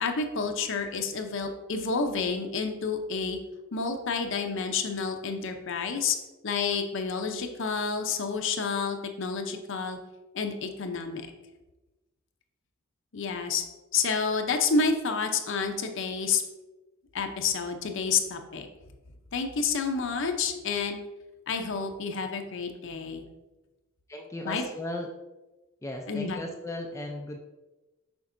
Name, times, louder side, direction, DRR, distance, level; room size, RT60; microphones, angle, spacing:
voice 1, 0.0-3.4 3.7-6.2 6.4-10.0 10.3-11.3 13.1-13.6 13.9-16.4 17.1-18.7 19.3-21.0 21.5-23.2 24.5-24.6 26.1-26.4, left 5 dB, 65° left, 5 dB, 0.6 m, -29 dB
voice 2, 24.1-25.1 25.8-27.4, left 1 dB, 15° left, 2 dB, 0.4 m, -36 dB
7.0 x 5.2 x 2.6 m, 1.1 s
head